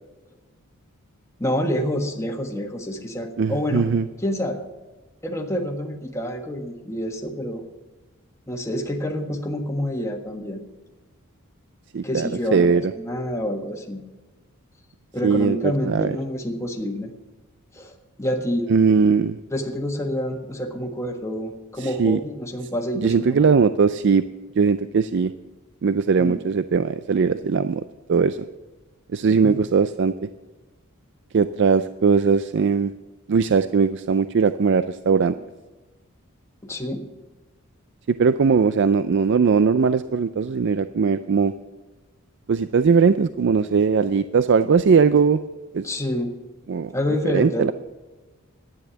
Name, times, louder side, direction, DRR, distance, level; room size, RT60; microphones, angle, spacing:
voice 1, 1.4-3.9 4.2-4.6 5.2-7.6 8.5-10.6 11.9-14.0 15.1-17.1 17.7-18.7 19.5-23.5 26.2-26.4 29.4-29.6 36.6-37.0 45.8-46.3 46.9-47.7, equal, 15° left, 2 dB, 1.5 m, -28 dB
voice 2, 3.4-4.0 11.9-12.9 15.2-16.1 18.7-19.4 21.8-22.2 23.0-24.2 24.6-25.3 25.8-27.8 28.1-28.4 29.1-30.1 31.3-32.9 33.3-35.3 38.1-41.5 42.5-45.4 45.7-45.8 46.7-46.9 47.3-47.7, right 5 dB, 55° right, 13 dB, 0.4 m, -19 dB
12.0 x 10.0 x 7.0 m, 1.2 s
head